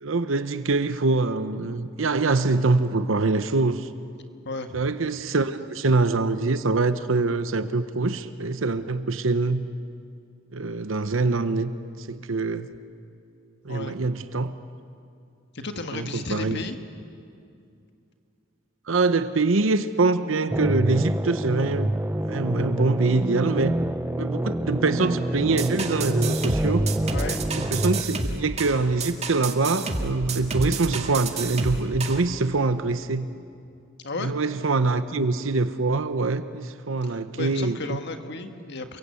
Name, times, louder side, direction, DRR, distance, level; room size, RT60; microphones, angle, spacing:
voice 1, 0.0-3.9 4.7-9.7 10.5-11.7 12.0-12.7 13.6-14.5 15.9-16.6 18.9-22.0 22.3-23.8 24.2-26.9 27.5-33.3 34.2-38.0, right 3 dB, 75° right, 11 dB, 0.9 m, -24 dB
voice 2, 4.4-4.9 13.7-13.9 15.5-16.8 27.1-27.4 34.0-34.3 37.0-39.0, left 3 dB, 60° left, 7 dB, 1.6 m, -34 dB
sound 1, 20.5-28.0, right 1 dB, 10° right, 0.8 m, -26 dB
sound 2, 25.6-32.2, right 3 dB, 35° right, 2.0 m, -30 dB
28.5 x 23.0 x 8.4 m, 2.5 s
head